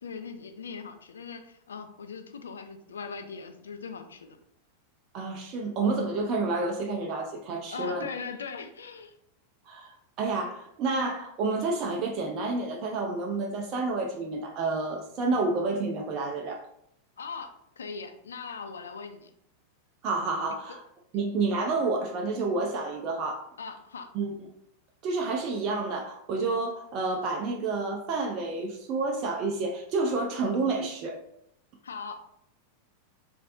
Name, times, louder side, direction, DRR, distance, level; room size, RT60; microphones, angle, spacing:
voice 1, 0.0-4.4 7.7-9.1 17.2-19.3 23.6-24.1 31.8-32.2, left 5 dB, 70° left, 7 dB, 0.3 m, -40 dB
voice 2, 5.1-8.1 9.7-9.9 10.2-16.6 20.0-20.8 21.1-23.5 24.1-24.3 25.0-31.2, right 3 dB, 35° right, 1 dB, 0.4 m, -29 dB
3.1 x 2.5 x 2.5 m, 0.73 s
figure-of-eight pair, 90°, 0 cm